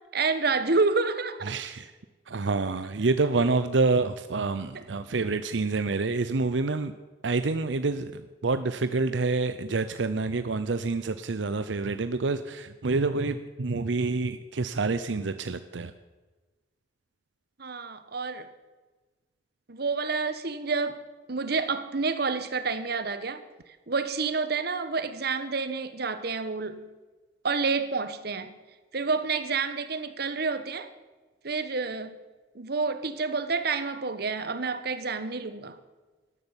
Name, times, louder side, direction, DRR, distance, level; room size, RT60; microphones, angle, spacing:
voice 1, 0.1-1.5 17.6-18.5 19.7-21.0 21.3-23.4 23.9-26.9 27.4-28.5 28.9-30.9 31.4-32.2 32.5-35.8, right 4 dB, 60° right, 11 dB, 1.3 m, -29 dB
voice 2, 1.4-1.9 2.3-6.9 7.2-15.9, right 3 dB, 90° right, 11 dB, 0.7 m, -27 dB
12.5 x 12.5 x 9.0 m, 1.3 s
head